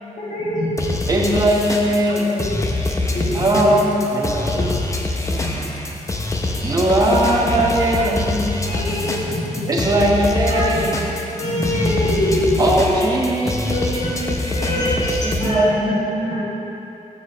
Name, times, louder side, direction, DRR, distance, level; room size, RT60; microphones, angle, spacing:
voice 1, 0.2-0.9 2.3-2.6 3.1-3.8 4.5-4.7 5.3-5.5 8.7-9.9 10.5-11.0 11.4-13.0 13.4-15.7 16.3-16.4, left 1 dB, 70° left, -6 dB, 2.0 m, -24 dB
sound 1, 0.8-15.5, left 2 dB, 25° left, 0.7 m, -25 dB
voice 2, 1.1-2.6 3.3-4.6 6.6-8.7 9.7-10.9 12.6-16.2, right 1 dB, 30° right, -3 dB, 1.2 m, -20 dB
voice 3, 10.6-11.4 12.4-12.8 15.4-16.5, right 3 dB, 50° right, -5 dB, 1.1 m, -32 dB
13.0 x 7.6 x 3.0 m, 3.0 s
wide cardioid pair, 155°, 13 cm